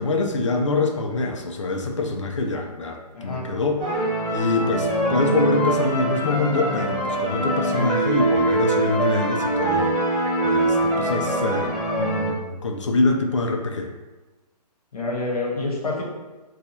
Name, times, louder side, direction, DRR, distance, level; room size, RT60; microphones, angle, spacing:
voice 1, 0.0-4.0 4.3-13.9, left 3 dB, 45° left, 3 dB, 0.4 m, -25 dB
voice 2, 3.1-3.5 14.9-16.0, left 3 dB, 60° left, -2 dB, 1.0 m, -27 dB
sound 1, 3.8-12.3, right 2 dB, 25° left, 1.1 m, -23 dB
2.7 x 2.3 x 4.1 m, 1.2 s
hypercardioid pair, 170°, 21 cm